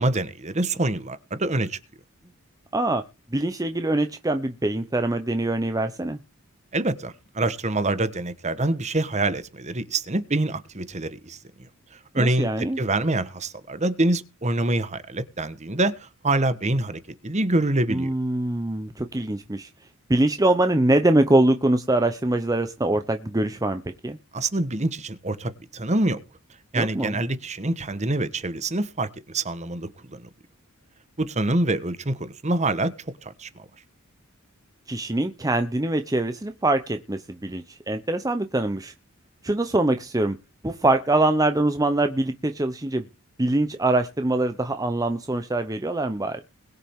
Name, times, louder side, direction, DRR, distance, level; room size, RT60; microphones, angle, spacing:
voice 1, 0.0-1.8 6.7-11.4 12.1-18.1 24.3-26.2 26.7-30.3 31.2-33.5, right 2 dB, 30° right, 1.2 m, -26 dB
voice 2, 2.7-3.0 3.3-6.2 12.2-12.8 17.9-19.7 20.1-24.2 26.8-27.1 34.9-38.9 39.4-40.4 40.6-43.0 43.4-46.4, right 2 dB, 15° right, 0.7 m, -23 dB
21.5 x 7.4 x 3.6 m
head